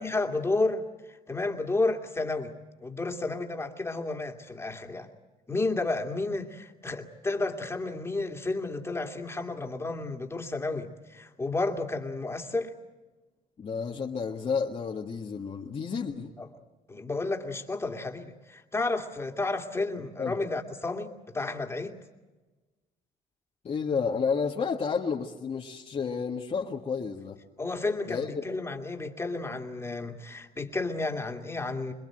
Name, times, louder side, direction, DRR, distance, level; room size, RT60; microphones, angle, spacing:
voice 1, 0.0-2.5 2.8-5.1 5.5-12.7 16.4-16.5 16.9-22.0 27.6-31.9, left 3 dB, 15° left, 2.4 m, -31 dB
voice 2, 13.6-16.3 20.2-20.3 23.6-27.4 28.1-28.4, left 5 dB, 35° left, 1.7 m, -31 dB
27.0 x 21.0 x 7.9 m
cardioid pair, 110°, 17 cm